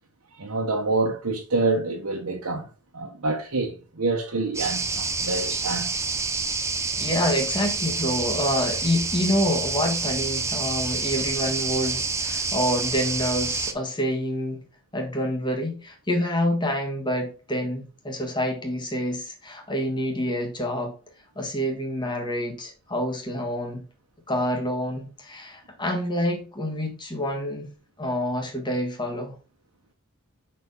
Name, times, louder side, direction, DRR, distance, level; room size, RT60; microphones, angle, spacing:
voice 1, 0.3-2.7 2.9-5.9, right 3 dB, 85° right, 1.1 m, -27 dB
sound 1, 4.5-13.7, right 4 dB, 15° right, 0.6 m, -28 dB
voice 2, 7.0-14.6 14.9-20.9 21.3-23.8 24.3-27.7 28.0-29.4, equal, 20° left, 1.6 m, -27 dB
5.9 x 4.4 x 5.4 m
head